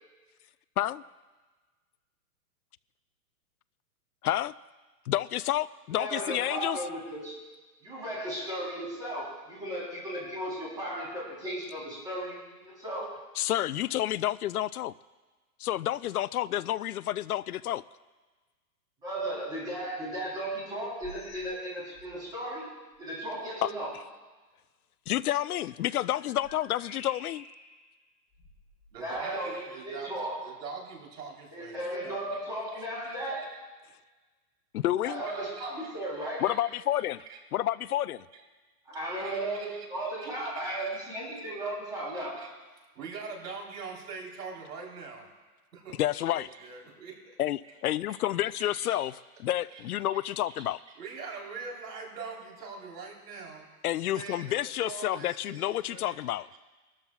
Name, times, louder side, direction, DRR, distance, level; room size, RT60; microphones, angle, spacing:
voice 1, 4.2-4.5 5.1-6.8 13.4-14.9 15.6-17.8 23.6-23.7 25.1-27.4 34.7-35.2 36.4-37.2 37.5-38.2 46.0-46.5 47.4-49.1 49.4-50.8 53.8-56.5, left 13 dB, 70° left, 17 dB, 0.5 m, -29 dB
voice 2, 5.9-7.4 7.8-13.2 19.0-23.9 29.0-30.4 31.5-33.5 35.0-36.4 38.9-42.4, right 1 dB, 10° right, -7 dB, 3.7 m, -35 dB
sound 1, 21.0-21.6 21.9-22.3 22.9-23.0 25.4-27.8 28.3-29.3, left 3 dB, 20° left, 2.0 m, -50 dB
voice 3, 28.9-33.5 35.2-36.6 37.3-37.4 38.3-38.4 39.1-39.9 40.2-40.9 42.1-42.5 43.0-45.3 45.7-46.0 46.3-47.3 47.6-47.7 48.1-48.3 48.6-49.0 49.7-49.8 50.1-50.2 50.4-50.7 50.9-53.7 54.1-56.6, right 4 dB, 85° right, 0 dB, 4.1 m, -44 dB
23.0 x 13.0 x 2.4 m, 1.3 s
hypercardioid pair, 175°, 46 cm